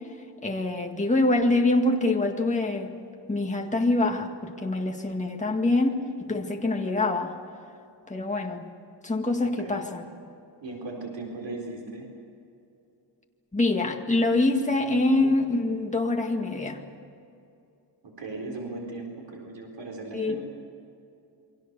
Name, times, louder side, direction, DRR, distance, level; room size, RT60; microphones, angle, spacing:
voice 1, 0.4-3.0 3.3-6.0 6.3-7.4 8.1-8.7 9.0-10.0 13.5-16.8 20.1-20.4, left 2 dB, 15° left, 2 dB, 1.9 m, -25 dB
voice 2, 9.4-9.9 10.6-12.1 18.0-20.4, right 2 dB, 70° right, 1 dB, 4.4 m, -38 dB
28.5 x 23.5 x 6.9 m, 2.7 s
wide cardioid pair, 170°, 45 cm